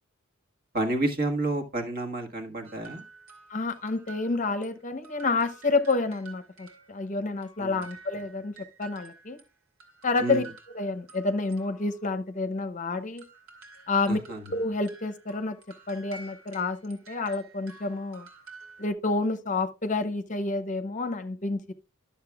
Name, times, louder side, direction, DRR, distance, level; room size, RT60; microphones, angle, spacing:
voice 1, 0.7-3.0 7.6-7.8 10.2-10.4 14.1-14.4, right 2 dB, 45° right, 1.6 m, -30 dB
sound 1, 2.6-4.8 5.0-9.5 9.8-12.2 13.2-18.9, right 4 dB, 80° right, 2.6 m, -50 dB
voice 2, 3.5-8.5 8.8-9.4 10.0-10.4 10.7-13.2 13.9-14.2 14.5-15.6 15.9-18.3 18.8-21.7, left 3 dB, 35° left, 0.7 m, -29 dB
12.5 x 7.3 x 2.3 m
head